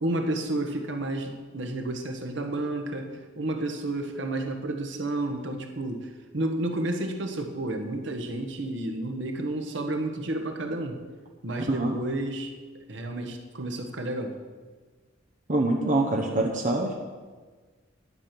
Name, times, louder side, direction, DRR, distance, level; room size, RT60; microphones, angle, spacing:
voice 1, 0.0-3.1 3.4-11.0 11.4-12.5 12.9-14.4, right 1 dB, 60° right, 4 dB, 1.3 m, -31 dB
voice 2, 15.5-16.9, right 2 dB, 40° right, 1 dB, 0.9 m, -25 dB
11.0 x 8.6 x 6.0 m, 1.4 s
head